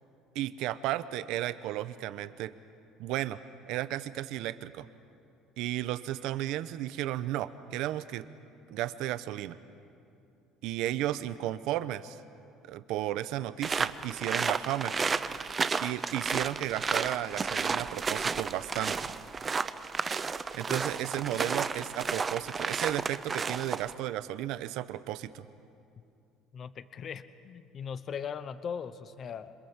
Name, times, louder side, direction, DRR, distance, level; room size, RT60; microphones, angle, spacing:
voice 1, 0.3-2.5 3.0-3.4 3.7-4.9 5.6-8.3 8.7-9.6 10.6-12.2 12.6-15.0 15.8-19.1 20.5-25.5, right 13 dB, 60° right, 13 dB, 0.9 m, -34 dB
sound 1, 13.6-23.9, right 5 dB, 20° right, 0.6 m, -32 dB
voice 2, 26.5-29.5, left 7 dB, 30° left, 13 dB, 0.8 m, -39 dB
27.5 x 26.0 x 7.4 m, 2.6 s
cardioid pair, 180°, 0 cm